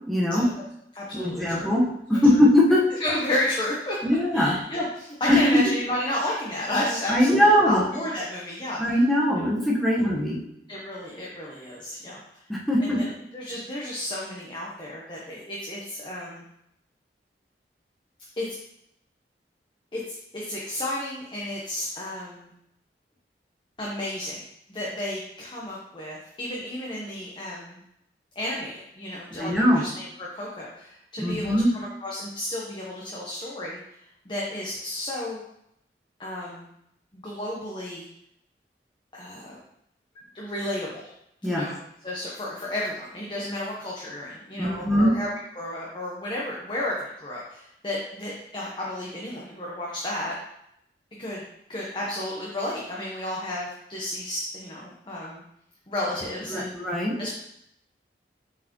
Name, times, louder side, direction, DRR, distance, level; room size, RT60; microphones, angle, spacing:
voice 1, 0.1-0.5 1.1-1.8 2.1-2.8 4.0-4.5 5.3-5.6 7.1-7.8 8.8-10.4 12.5-13.0 29.3-29.8 31.2-31.7 41.4-41.6 44.6-45.1 56.5-57.1, left 1 dB, ahead, -6 dB, 1.1 m, -21 dB
voice 2, 0.9-1.7 2.3-2.4 2.9-4.0 4.3-9.0 10.7-12.2 12.8-13.1 13.3-16.4 18.4-18.5 19.9-22.5 23.8-24.4 24.7-27.8 28.3-35.4 36.2-36.7 37.1-38.1 39.1-39.6 40.3-41.1 41.4-41.8 42.0-45.3 45.6-50.3 51.2-55.4 55.9-56.7 57.2-57.3, left 1 dB, 25° left, -5 dB, 0.9 m, -32 dB
7.5 x 4.6 x 3.0 m, 0.77 s
head